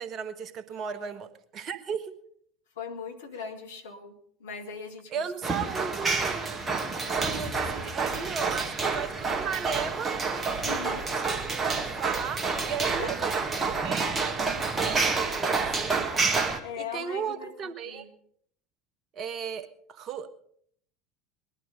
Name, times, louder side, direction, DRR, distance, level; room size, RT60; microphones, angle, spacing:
voice 1, 0.0-2.1 5.1-6.7 7.2-10.1 11.2-16.1 16.4-18.1 19.1-20.3, right 7 dB, 40° right, 10 dB, 1.4 m, -36 dB
voice 2, 0.8-1.2 2.8-4.1 4.4-5.1 5.6-5.7 10.6-11.1 13.0-13.2 16.6-17.5 17.9-18.1, left 6 dB, 70° left, 4 dB, 2.0 m, -39 dB
sound 1, 5.4-16.6, right 4 dB, 20° right, 2.0 m, -28 dB
20.5 x 11.5 x 5.2 m, 0.64 s
figure-of-eight pair, 70°, 0 cm